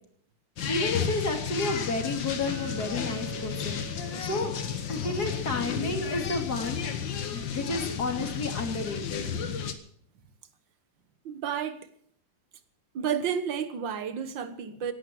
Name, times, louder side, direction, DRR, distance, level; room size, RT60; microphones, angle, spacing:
sound 1, 0.6-9.7, left 7 dB, 85° left, 2.0 m, -33 dB
voice 1, 0.7-4.5 4.9-6.8 7.3-9.3, left 3 dB, 55° left, 3.3 m, -31 dB
Chink clink, 2.5-6.7, right 9 dB, 60° right, 2.8 m, -46 dB
voice 2, 11.3-11.8 12.9-14.9, right 8 dB, 85° right, 2.0 m, -31 dB
17.0 x 11.0 x 7.6 m
omnidirectional pair, 2.0 m